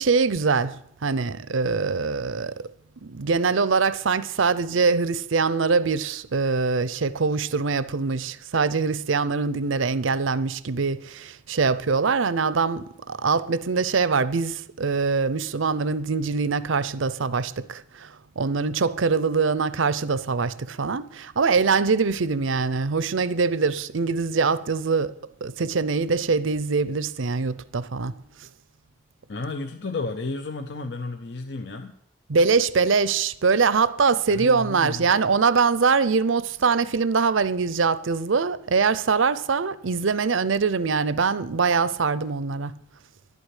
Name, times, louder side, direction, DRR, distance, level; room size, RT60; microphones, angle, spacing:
voice 1, 0.0-2.6 3.0-18.1 18.4-25.1 25.4-28.2 32.3-42.7, right 4 dB, 80° right, 0.6 m, -23 dB
voice 2, 29.3-31.9 34.3-35.1, left 3 dB, 55° left, 0.8 m, -32 dB
11.5 x 8.3 x 9.9 m
head